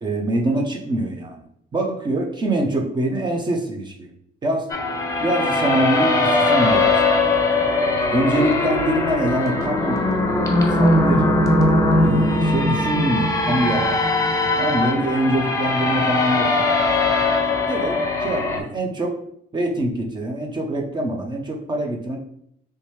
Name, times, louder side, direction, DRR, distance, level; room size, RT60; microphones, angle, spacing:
voice 1, 0.0-1.4 1.7-4.1 4.4-4.7 5.2-7.3 8.1-10.0 10.7-11.3 12.0-14.1 14.6-16.5 17.7-19.2 19.5-22.2, right 1 dB, 25° right, 2 dB, 0.6 m, -24 dB
sound 1, 4.7-18.6, left 2 dB, 20° left, 0.6 m, -20 dB
3.3 x 3.0 x 3.1 m, 0.71 s
cardioid pair, 110°, 17 cm